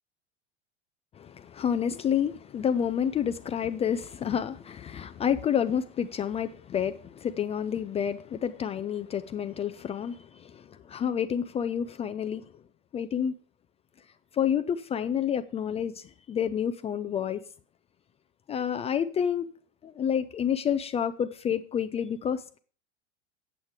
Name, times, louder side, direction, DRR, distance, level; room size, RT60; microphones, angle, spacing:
voice 1, 1.2-12.5 12.9-13.3 14.3-17.4 18.5-19.5 19.8-22.6, left 8 dB, 15° left, 0.4 m, -29 dB
8.6 x 8.3 x 4.7 m
figure-of-eight pair, 90°, 37 cm